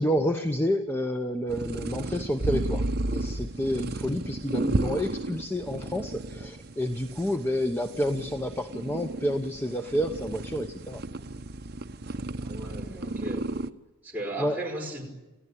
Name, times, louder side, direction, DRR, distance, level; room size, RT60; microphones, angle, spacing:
voice 1, 0.0-11.0 14.4-14.6, equal, 10° left, 6 dB, 0.9 m, -29 dB
sound 1, 1.5-13.7, right 2 dB, 50° right, 0.9 m, -33 dB
voice 2, 12.4-13.5 14.0-15.0, right 1 dB, 10° right, -2 dB, 5.4 m, -36 dB
29.0 x 15.5 x 10.0 m, 1.1 s
head